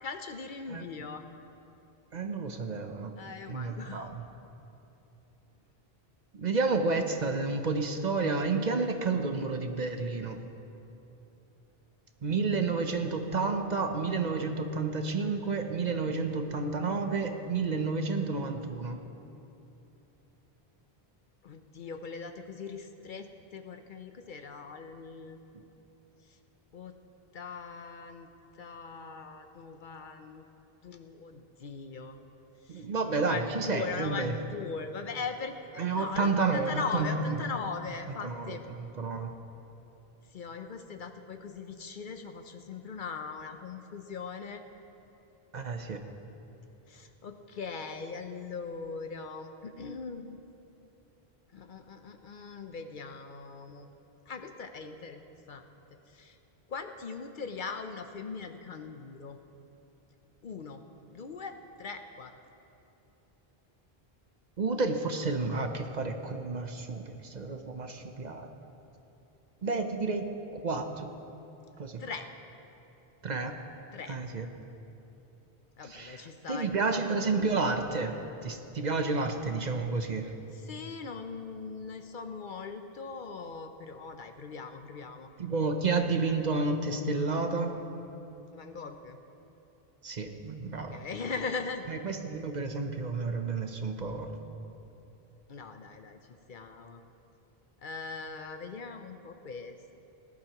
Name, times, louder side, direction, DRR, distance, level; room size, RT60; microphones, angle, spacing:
voice 1, 0.0-1.2 3.2-4.1 21.4-23.3 23.5-25.4 26.3-26.4 26.7-27.0 27.3-28.3 28.6-30.5 30.8-32.2 32.6-38.6 40.3-44.6 46.9-50.4 51.5-53.9 54.3-55.2 55.5-55.7 56.1-56.4 56.7-59.4 60.4-60.8 61.1-62.3 72.0-72.3 73.9-74.2 75.8-77.0 80.5-85.3 88.5-89.2 90.9-91.8 95.5-96.2 96.5-97.0 97.8-99.8, left 5 dB, 55° left, 7 dB, 0.7 m, -40 dB
voice 2, 2.1-3.1 3.5-4.2 6.3-10.4 12.2-19.0 32.7-34.3 35.8-37.3 38.2-39.3 45.5-46.0 64.6-68.5 69.6-70.3 70.5-71.1 71.8-72.0 73.2-73.5 74.1-74.5 75.8-80.3 85.4-87.8 90.0-91.0 91.9-94.3, right 4 dB, 50° right, 5 dB, 0.8 m, -31 dB
19.0 x 12.0 x 3.0 m, 2.9 s
omnidirectional pair, 1.0 m